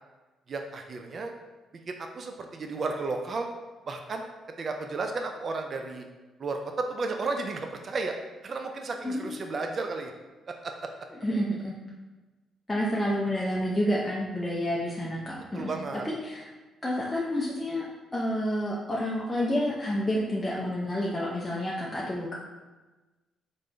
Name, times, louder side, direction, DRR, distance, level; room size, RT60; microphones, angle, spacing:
voice 1, 0.5-1.3 1.9-3.5 3.9-4.3 4.6-6.1 6.4-8.2 8.4-10.1 10.5-10.9 15.5-16.1, right 3 dB, 45° right, 4 dB, 0.3 m, -33 dB
voice 2, 9.0-9.4 11.2-11.8 12.7-15.7 16.0-16.5 16.8-17.8 18.1-22.3, equal, 15° left, -5 dB, 0.5 m, -29 dB
3.5 x 2.6 x 3.2 m, 1.2 s
cardioid pair, 90°, 0 cm